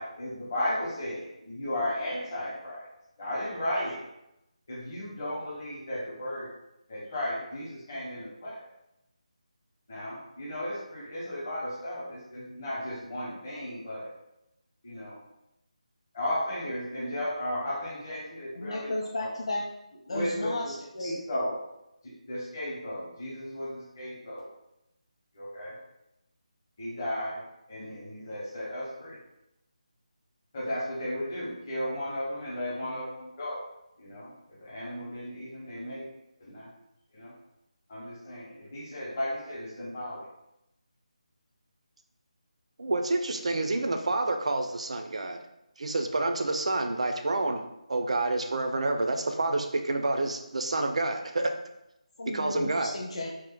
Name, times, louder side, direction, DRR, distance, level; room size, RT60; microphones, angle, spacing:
voice 1, 0.0-2.8 3.2-4.0 4.7-6.5 6.9-8.6 9.9-14.1 14.8-15.2 16.1-18.9 19.2-19.3 20.1-20.5 20.9-21.5 22.0-24.5 25.3-25.8 26.8-29.2 30.5-33.6 34.0-34.3 34.6-36.0 36.4-36.7 37.1-37.3 37.9-40.2, left 1 dB, 25° left, -7 dB, 0.7 m, -35 dB
voice 2, 18.5-19.7 20.1-21.2 52.2-53.3, left 1 dB, 50° left, -2 dB, 0.4 m, -34 dB
voice 3, 42.8-45.4 45.8-47.6 47.9-51.5 52.3-52.9, right 2 dB, 55° right, 5 dB, 0.4 m, -28 dB
2.9 x 2.1 x 3.4 m, 0.88 s
figure-of-eight pair, 175°, 4 cm